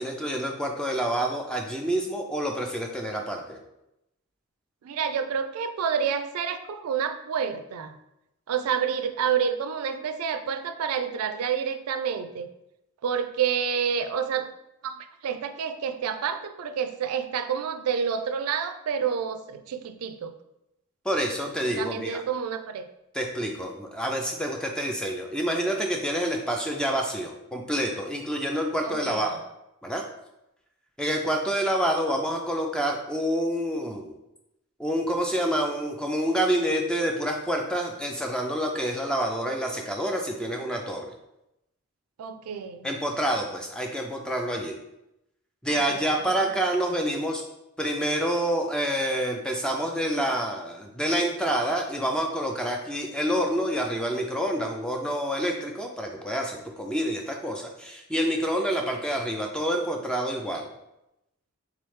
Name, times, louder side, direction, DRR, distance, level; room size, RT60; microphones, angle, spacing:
voice 1, 0.0-3.6 21.0-22.2 23.1-29.4 29.8-30.0 31.0-34.2 34.8-41.1 42.8-44.8 45.6-47.4 47.8-60.7, right 1 dB, 5° left, 2 dB, 0.3 m, -27 dB
voice 2, 4.8-7.9 8.5-12.5 13.0-14.5 14.8-15.0 15.2-20.3 21.8-22.9 28.8-29.4 42.2-42.9 45.7-46.4, right 7 dB, 85° right, 9 dB, 0.3 m, -29 dB
3.7 x 3.1 x 3.1 m, 0.88 s
head